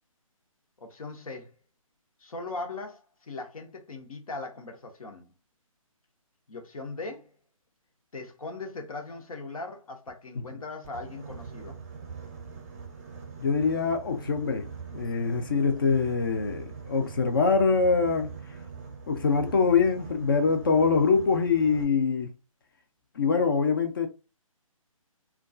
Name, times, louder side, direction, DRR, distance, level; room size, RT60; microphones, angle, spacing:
voice 1, 0.8-1.5 2.2-5.3 6.5-7.3 8.1-11.8, left 3 dB, 75° left, 0.8 m, -39 dB
Boat Water vehicle, 10.8-21.8, right 5 dB, 30° right, 0.6 m, -43 dB
voice 2, 13.4-18.3 19.1-22.3 23.2-24.1, left 5 dB, 40° left, 0.4 m, -24 dB
2.3 x 2.2 x 2.4 m
hypercardioid pair, 160°, 18 cm